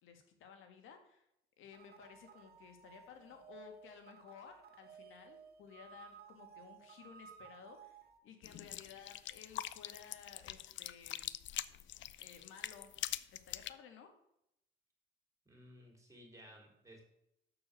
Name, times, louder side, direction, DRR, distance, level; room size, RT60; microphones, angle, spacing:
voice 1, 0.0-1.3 1.6-11.2 12.2-12.9 13.3-14.1, left 7 dB, 85° left, 6 dB, 1.9 m, -56 dB
sound 1, 1.7-8.2, right 7 dB, 50° right, 1.2 m, -57 dB
sound 2, 8.4-13.7, left 13 dB, 70° left, 0.5 m, -44 dB
voice 2, 15.5-17.0, equal, 15° right, 1 dB, 3.6 m, -57 dB
6.9 x 6.8 x 6.8 m, 0.81 s
cardioid pair, 90°, 20 cm